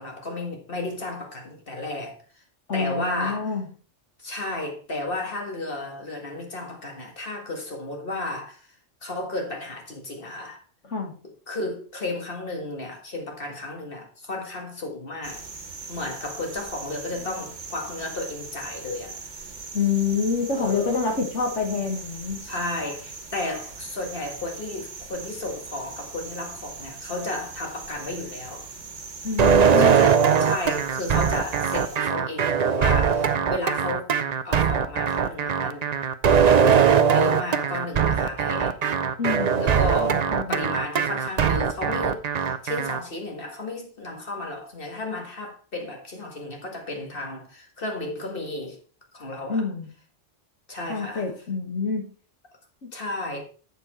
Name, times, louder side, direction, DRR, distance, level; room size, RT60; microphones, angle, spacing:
voice 1, 0.0-2.4 2.7-3.5 4.2-8.7 9.0-10.6 11.2-15.5 15.9-19.2 20.5-21.0 22.4-28.7 29.8-34.1 34.4-35.9 36.3-38.8 39.6-48.8 49.1-49.7 50.7-51.3 52.9-53.4, left 2 dB, 50° left, 2.1 m, -33 dB
voice 2, 2.7-3.7 10.9-11.1 19.7-22.4 29.2-30.1 39.2-39.7 40.0-40.6 49.5-49.9 50.9-52.1, left 5 dB, 80° left, 2.3 m, -27 dB
sound 1, 15.2-32.0, right 4 dB, 75° right, 1.6 m, -40 dB
sound 2, 29.4-43.0, right 7 dB, 45° right, 0.6 m, -21 dB
7.9 x 6.8 x 4.4 m
omnidirectional pair, 1.2 m